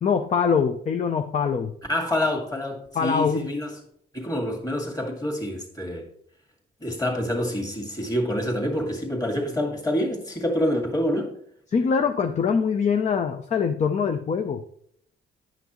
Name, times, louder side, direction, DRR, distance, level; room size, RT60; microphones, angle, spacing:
voice 1, 0.0-1.7 2.9-3.5 11.7-14.6, left 6 dB, 35° left, 0.5 m, -23 dB
voice 2, 1.9-3.8 4.1-6.1 6.8-11.3, left 1 dB, 20° left, 2.0 m, -27 dB
10.0 x 5.9 x 3.0 m
cardioid pair, 90°, 20 cm